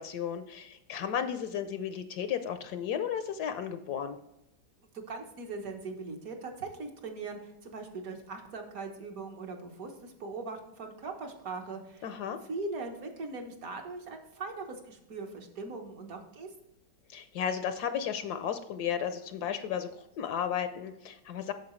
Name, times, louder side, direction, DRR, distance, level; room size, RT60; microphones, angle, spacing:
voice 1, 0.0-4.2 12.0-12.4 17.1-21.5, left 8 dB, 70° left, 9 dB, 1.1 m, -34 dB
voice 2, 4.9-12.1 12.5-16.5, right 3 dB, 55° right, 3 dB, 1.5 m, -40 dB
8.6 x 6.8 x 3.1 m, 0.86 s
omnidirectional pair, 1.9 m